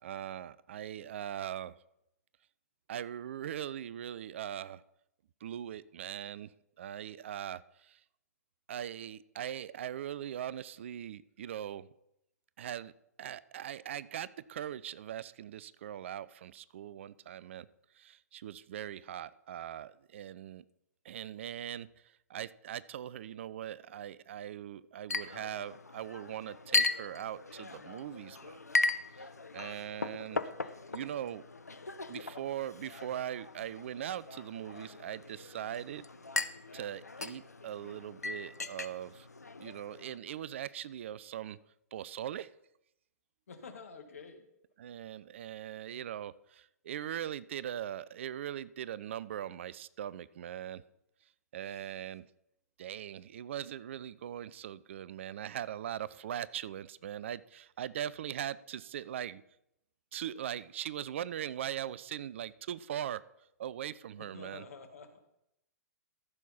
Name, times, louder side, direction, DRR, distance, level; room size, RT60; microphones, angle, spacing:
voice 1, 0.0-1.7 2.9-4.8 5.4-6.5 6.8-8.0 8.7-11.9 12.6-12.9 13.2-17.7 17.9-20.6 21.0-28.6 29.1-29.3 29.5-30.4 30.9-31.5 32.1-36.1 36.7-39.3 39.6-41.6 41.9-42.5 44.8-50.8 51.5-52.3 52.8-59.4 60.1-63.2 63.6-64.7, right 10 dB, 50° right, 19 dB, 0.4 m, -40 dB
Chink clink, 25.1-40.2, left 3 dB, 80° left, 0.7 m, -38 dB
voice 2, 43.5-44.5 51.6-51.9 64.2-65.2, left 5 dB, 60° left, 7 dB, 1.8 m, -49 dB
14.0 x 6.4 x 5.5 m, 0.82 s
figure-of-eight pair, 115°, 9 cm